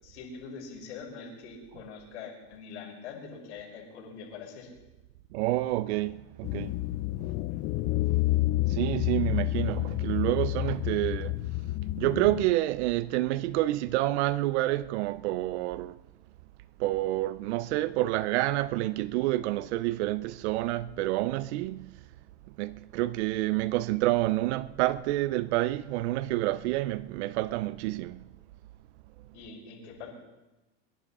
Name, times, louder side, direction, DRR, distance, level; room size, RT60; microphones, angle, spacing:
voice 1, 0.0-4.7 29.3-30.1, left 5 dB, 85° left, 5.6 m, -43 dB
voice 2, 5.3-6.8 8.7-11.4 12.0-16.0 16.8-21.9 22.6-28.2, right 16 dB, 75° right, 0.6 m, -28 dB
sound 1, 6.4-12.5, left 18 dB, 40° left, 0.4 m, -29 dB
23.5 x 11.0 x 4.3 m
supercardioid pair, 125°, 34 cm